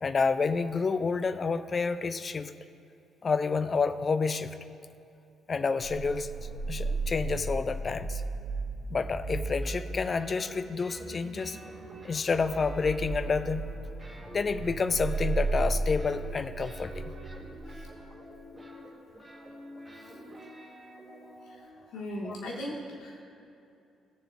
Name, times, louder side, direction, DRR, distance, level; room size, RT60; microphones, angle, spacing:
voice 1, 0.0-2.5 3.2-4.6 5.5-6.3 6.7-8.2 8.9-11.6 12.0-13.7 14.3-17.1 22.2-22.4, left 4 dB, 35° left, 12 dB, 0.4 m, -29 dB
sound 1, 5.8-18.4, right 3 dB, 70° right, 0.8 m, -35 dB
sound 2, 9.6-11.1 11.4-13.7 14.0-21.7, equal, 20° right, 2.0 m, -48 dB
voice 2, 21.9-23.2, equal, 60° left, -3 dB, 1.6 m, -37 dB
17.5 x 7.0 x 2.3 m, 2.6 s
figure-of-eight pair, 45°, 0 cm